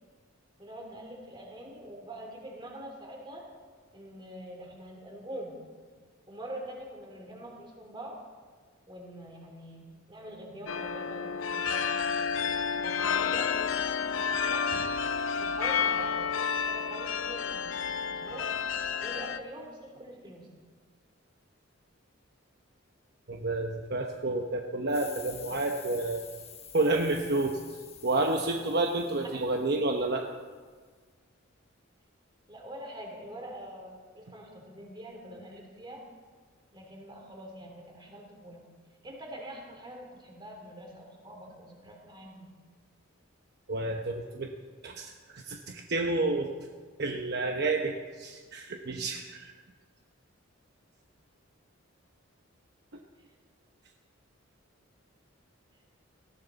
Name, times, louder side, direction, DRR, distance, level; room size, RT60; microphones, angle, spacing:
voice 1, 0.6-3.4 3.9-5.5 6.3-8.2 8.9-12.0 12.8-14.6 15.4-17.8 18.1-18.5 19.0-20.5 29.2-29.3 32.5-36.0 36.7-38.6 39.0-42.5, right 1 dB, 25° right, 0 dB, 3.3 m, -44 dB
sound 1, 10.7-19.4, left 6 dB, 75° left, 0.7 m, -30 dB
voice 2, 23.3-26.2 26.7-27.6 28.0-30.2 43.7-44.5 44.8-46.5 47.0-49.5, right 2 dB, 55° right, 2 dB, 1.0 m, -30 dB
sound 2, 24.9-30.2, left 8 dB, 30° left, 1.2 m, -49 dB
19.0 x 15.5 x 4.1 m, 1.5 s
head